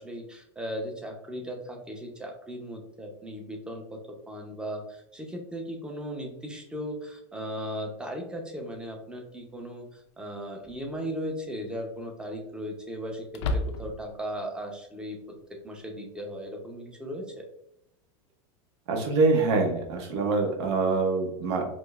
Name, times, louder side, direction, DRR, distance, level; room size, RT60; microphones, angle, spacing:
voice 1, 0.0-4.0 4.3-15.2 15.5-17.5, equal, 5° right, 1 dB, 0.6 m, -37 dB
sound 1, 8.7-8.8 10.6-11.0 11.4-11.5 13.3-14.2, left 2 dB, 75° left, 0.5 m, -31 dB
voice 2, 18.9-21.7, right 3 dB, 70° right, 2 dB, 0.8 m, -25 dB
4.9 x 2.0 x 2.3 m, 0.74 s
supercardioid pair, 145°, 15 cm